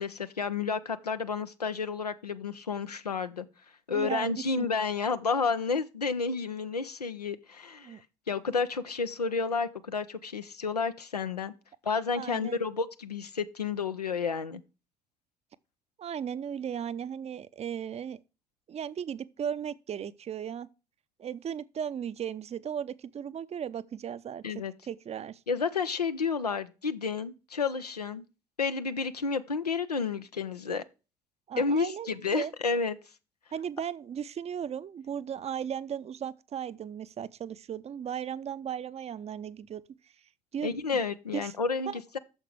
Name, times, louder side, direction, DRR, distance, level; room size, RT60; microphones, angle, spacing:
voice 1, 0.0-3.5 3.9-8.0 8.3-11.5 11.8-14.6 24.4-24.7 25.5-28.3 28.6-30.8 31.6-33.0 40.6-42.2, left 5 dB, 85° left, 0.5 m, -31 dB
voice 2, 3.9-4.7 7.8-8.0 12.2-12.6 16.0-18.2 18.7-20.7 21.2-24.4 24.9-25.4 31.5-32.5 33.5-39.8 40.5-41.0 41.3-41.5 41.9-42.0, right 8 dB, 35° right, 0.6 m, -36 dB
8.9 x 6.6 x 4.7 m
figure-of-eight pair, 50°, 20 cm